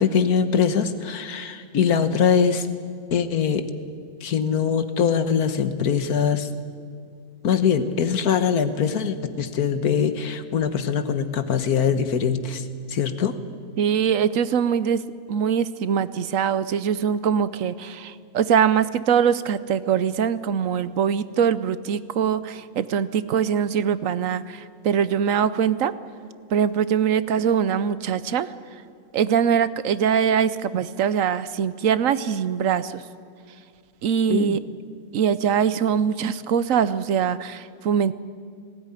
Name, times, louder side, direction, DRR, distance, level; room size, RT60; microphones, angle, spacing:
voice 1, 0.0-2.7 3.1-3.7 4.2-6.5 7.4-13.4 34.3-34.6, left 7 dB, 85° left, 10 dB, 1.7 m, -22 dB
voice 2, 13.8-15.0 15.3-25.9 26.5-28.5 29.1-33.0 34.0-34.6 35.1-38.1, right 8 dB, 65° right, 15 dB, 1.1 m, -22 dB
19.0 x 16.5 x 9.9 m, 2.2 s
omnidirectional pair, 1.6 m